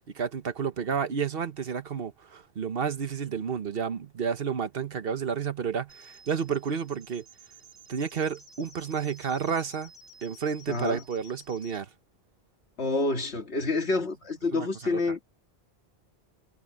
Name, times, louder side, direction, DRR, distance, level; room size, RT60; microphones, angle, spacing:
voice 1, 0.1-7.2 7.9-9.9 10.2-11.9 14.5-15.0, right 6 dB, 60° right, 1.2 m, -31 dB
sound 1, 5.9-11.8, right 1 dB, 60° left, 7.7 m, -53 dB
voice 2, 10.7-11.0 12.8-15.2, left 3 dB, 75° left, 2.3 m, -28 dB
omnidirectional pair, 1.1 m